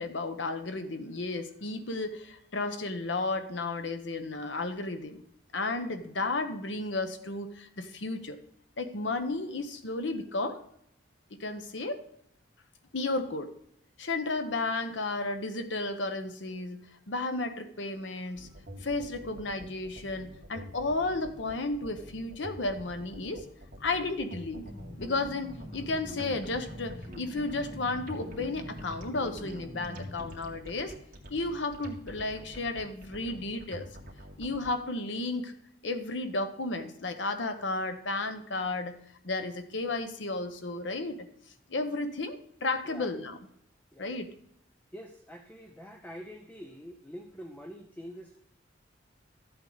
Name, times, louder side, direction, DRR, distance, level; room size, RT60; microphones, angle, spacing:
voice 1, 0.0-5.2 5.5-8.4 8.8-10.6 11.4-12.0 12.9-13.5 14.0-16.8 17.1-18.5 18.8-23.5 23.8-24.7 25.0-31.0 31.3-33.9 34.4-35.5 35.8-39.0 39.2-41.3 41.7-43.4 44.0-44.3, left 2 dB, 75° left, 9 dB, 1.0 m, -33 dB
sound 1, 18.4-34.7, equal, 50° right, 2.1 m, -46 dB
sound 2, 24.6-30.3, left 1 dB, 35° left, 3.0 m, -44 dB
voice 2, 44.9-48.4, equal, 10° left, 5 dB, 0.7 m, -45 dB
13.5 x 7.9 x 4.0 m, 0.72 s
head